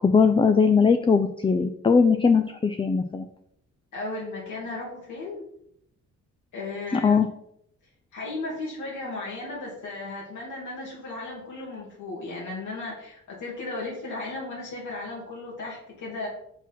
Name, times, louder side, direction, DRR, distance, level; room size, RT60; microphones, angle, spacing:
voice 1, 0.0-3.3 7.0-7.3, left 5 dB, 15° left, 9 dB, 0.4 m, -20 dB
voice 2, 3.9-5.5 6.5-7.2 8.1-16.3, left 2 dB, 75° left, -4 dB, 2.5 m, -35 dB
6.0 x 6.0 x 5.8 m, 0.72 s
cardioid pair, 140°, 30 cm